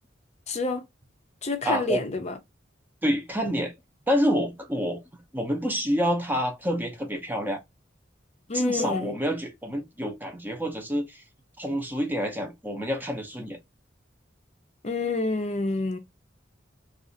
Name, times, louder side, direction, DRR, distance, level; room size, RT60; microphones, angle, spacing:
voice 1, 0.5-0.8 1.4-2.4 8.5-9.1 14.8-16.0, left 3 dB, 35° left, 0.6 m, -28 dB
voice 2, 1.6-2.1 3.0-3.7 4.1-5.0 5.3-7.6 8.5-11.2 11.6-13.6, equal, 10° right, 0.6 m, -28 dB
2.6 x 2.4 x 3.8 m
head